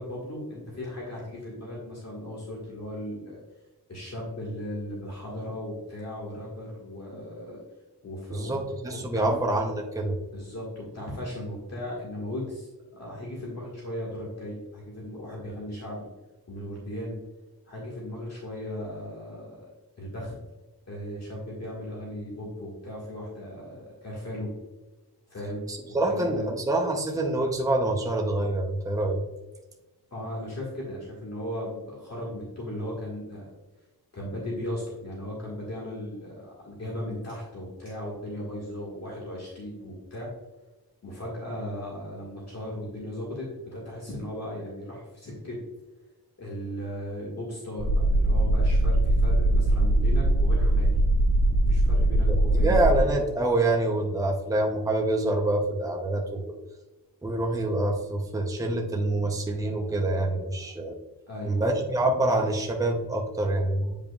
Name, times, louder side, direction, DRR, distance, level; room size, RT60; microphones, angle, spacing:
voice 1, 0.0-3.4 3.9-7.6 8.0-8.6 8.9-9.3 10.3-16.0 16.5-17.2 17.7-19.7 20.0-20.3 20.9-24.5 25.3-26.4 30.1-33.5 34.1-40.3 41.0-45.6 46.4-51.0 51.6-53.1 61.3-61.7, left 1 dB, 40° left, -5 dB, 1.7 m, -37 dB
voice 2, 8.3-10.2 25.7-29.2 52.3-56.6 57.2-61.0 61.5-64.0, right 2 dB, 10° right, 1 dB, 0.7 m, -26 dB
sound 1, 47.8-53.1, right 1 dB, 30° right, 1.0 m, -21 dB
8.8 x 5.4 x 2.3 m, 1.1 s
wide cardioid pair, 170°, 39 cm